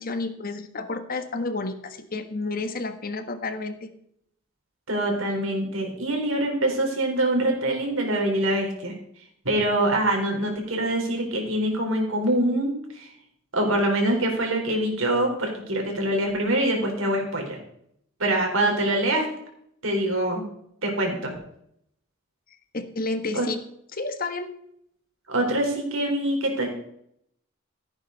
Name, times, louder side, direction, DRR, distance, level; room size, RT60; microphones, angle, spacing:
voice 1, 0.0-3.9 22.7-23.6 23.9-24.5, left 3 dB, 45° left, 9 dB, 1.3 m, -30 dB
voice 2, 4.9-8.9 9.4-13.1 13.5-17.6 18.2-19.3 19.8-20.4 20.8-21.3 23.3-23.5 25.3-26.7, right 1 dB, 85° right, 1 dB, 4.2 m, -24 dB
16.0 x 9.0 x 4.1 m, 0.70 s
head